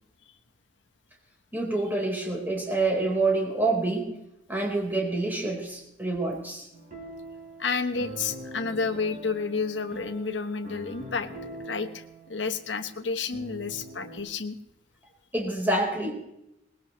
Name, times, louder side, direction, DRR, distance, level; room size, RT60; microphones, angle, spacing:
voice 1, 1.5-4.1 4.5-6.7 15.3-16.1, right 2 dB, 10° right, -1 dB, 4.3 m, -27 dB
sound 1, 6.7-14.2, right 1 dB, 50° right, 4.2 m, -43 dB
voice 2, 7.6-11.3 11.6-14.6, left 4 dB, 90° left, 8 dB, 1.2 m, -30 dB
20.5 x 20.0 x 3.2 m, 0.84 s
head